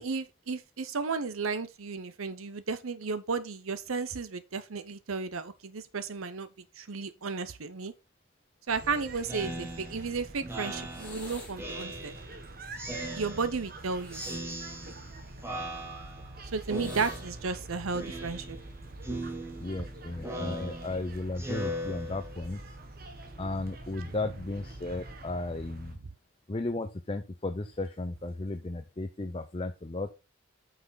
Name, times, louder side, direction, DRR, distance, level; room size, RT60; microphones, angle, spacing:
voice 1, 0.0-6.5 6.8-7.9 8.7-12.1 13.1-14.2 16.5-18.6, right 4 dB, 85° right, 0.7 m, -33 dB
sound 1, 8.7-25.9, right 2 dB, 45° right, 1.6 m, -46 dB
Speech synthesizer, 9.3-12.4 12.8-13.8 14.1-15.1 15.4-16.3 16.7-17.6 17.9-18.7 19.0-22.6, right 1 dB, 10° right, 1.7 m, -39 dB
sound 2, 10.8-11.7 13.9-15.4 16.6-17.3 18.3-18.7, left 2 dB, 5° left, 3.8 m, -48 dB
voice 2, 19.6-22.6 23.4-26.0 26.5-30.1, left 2 dB, 25° left, 0.6 m, -35 dB
9.2 x 5.9 x 3.9 m
head